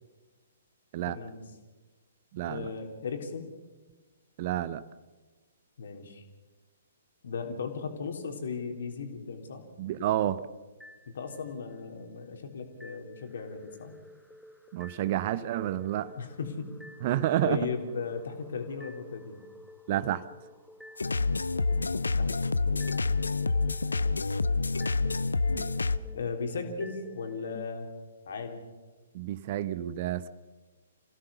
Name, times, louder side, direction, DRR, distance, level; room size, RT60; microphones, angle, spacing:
voice 1, 1.1-1.4 2.5-3.5 5.8-6.2 7.2-9.7 11.1-13.9 16.2-16.7 17.4-19.4 22.2-22.3 22.6-23.2 26.1-27.9 28.3-28.7, left 5 dB, 55° left, 4 dB, 3.4 m, -37 dB
voice 2, 2.3-2.7 4.4-4.8 9.8-10.4 14.7-16.1 17.0-17.6 19.9-20.2 29.1-30.3, right 12 dB, 40° right, 16 dB, 0.8 m, -29 dB
sound 1, 10.8-11.8 12.8-27.7, left 1 dB, ahead, 1.4 m, -51 dB
sound 2, 21.0-26.0, left 3 dB, 70° left, 0.7 m, -28 dB
27.5 x 16.5 x 7.0 m, 1.3 s
figure-of-eight pair, 120°, 0 cm